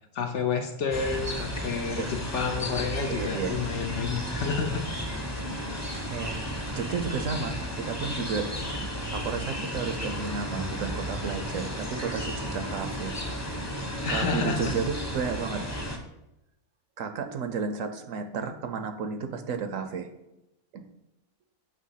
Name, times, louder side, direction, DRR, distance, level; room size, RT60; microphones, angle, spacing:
voice 1, 0.1-4.8 14.0-14.8, left 5 dB, 65° left, 5 dB, 0.8 m, -30 dB
sound 1, 0.9-16.0, equal, 15° left, 0.7 m, -33 dB
voice 2, 3.1-3.6 6.1-8.5 8.8-13.1 13.6-13.7 14.1-15.7 17.0-20.1 20.7-20.8, right 6 dB, 70° right, 7 dB, 1.0 m, -33 dB
7.5 x 3.4 x 5.7 m, 0.91 s
omnidirectional pair, 1.6 m